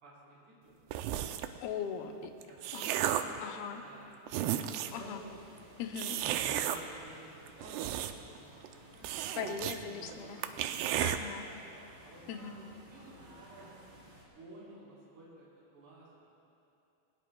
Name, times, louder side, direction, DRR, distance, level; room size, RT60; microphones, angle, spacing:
voice 1, 0.0-0.7 2.4-3.0 3.7-5.3 6.1-6.2 6.5-9.4 9.7-10.6 11.2-11.6 12.0-12.6 12.9-13.7 14.3-15.5 15.7-16.3, right 1 dB, 50° right, -8 dB, 5.5 m, -54 dB
sound 1, 0.9-1.6 2.2-3.4 4.0-4.1 4.3-5.0 6.0-6.8 7.5-8.4 8.6-8.7 9.0-9.8 10.1-10.2 10.4-11.2, right 11 dB, 85° right, 2.6 m, -33 dB
voice 2, 1.6-2.3 2.7-3.0 3.4-3.8 4.9-5.2 5.8-6.2 9.4-10.4 11.0-11.5 12.3-12.5, left 7 dB, 75° left, 5 dB, 2.6 m, -39 dB
sound 2, 4.8-14.2, right 1 dB, 30° right, 3.0 m, -56 dB
20.5 x 19.5 x 2.3 m, 2.8 s
omnidirectional pair, 4.8 m